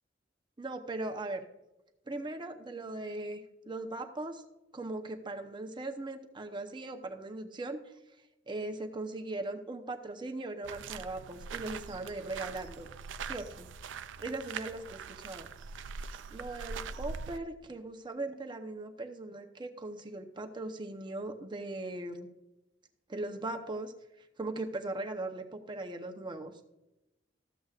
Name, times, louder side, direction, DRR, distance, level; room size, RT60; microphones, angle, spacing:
voice 1, 0.6-1.5 2.1-4.4 4.7-7.8 8.5-12.9 13.2-13.7 14.2-15.5 16.3-22.3 23.1-23.9 24.4-26.5, right 2 dB, 25° right, 5 dB, 0.8 m, -39 dB
sound 1, 10.6-17.4, right 5 dB, 80° right, 0.4 m, -42 dB
14.0 x 7.9 x 2.4 m, 0.93 s
head